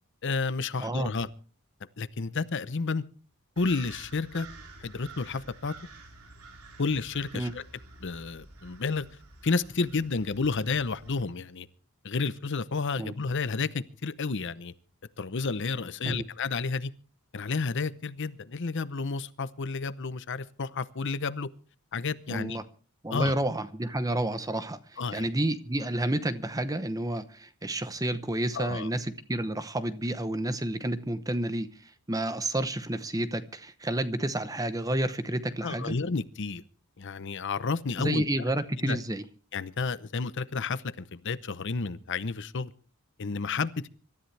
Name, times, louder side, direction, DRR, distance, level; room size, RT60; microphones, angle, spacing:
voice 1, 0.2-1.3 2.0-3.0 3.6-4.5 4.8-5.7 6.8-7.6 8.0-9.1 9.4-11.7 12.0-14.7 15.2-16.9 17.3-21.5 21.9-22.6 23.1-23.3 25.0-25.3 28.5-28.9 35.6-36.6 37.0-38.3 38.8-39.0 39.5-42.7 43.2-43.9, left 4 dB, 55° left, 0.7 m, -31 dB
voice 2, 0.8-1.1 7.3-7.5 13.0-13.1 16.0-16.2 22.3-22.6 23.0-31.7 32.1-36.0 38.0-39.2, right 1 dB, 15° right, 0.8 m, -30 dB
sound 1, 3.6-11.2, right 3 dB, 75° right, 3.1 m, -50 dB
25.5 x 13.5 x 3.3 m
head